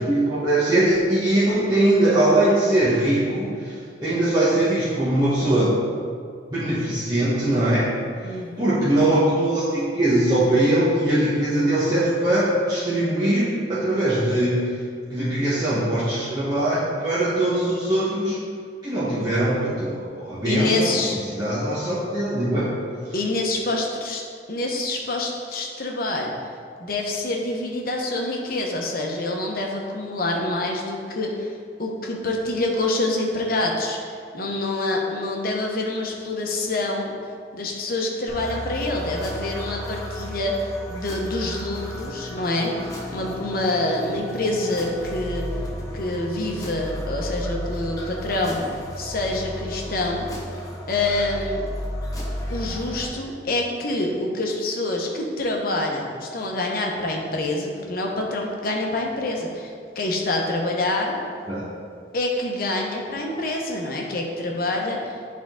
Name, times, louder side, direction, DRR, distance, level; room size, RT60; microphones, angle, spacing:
voice 1, 0.0-5.8 6.5-7.9 8.2-14.8 15.1-18.4 18.8-21.0 21.3-22.7 61.5-61.7, right 1 dB, 25° right, -11 dB, 1.2 m, -21 dB
voice 2, 8.2-8.7 20.4-21.2 23.1-24.2 24.5-26.3 26.8-31.5 31.8-37.1 37.5-45.5 45.9-48.6 49.0-50.3 50.9-51.6 52.5-61.2 62.1-65.1, left 2 dB, 55° left, 0 dB, 0.9 m, -26 dB
sound 1, 38.3-53.1, equal, 20° left, 1.0 m, -33 dB
9.8 x 3.7 x 3.7 m, 2.2 s
head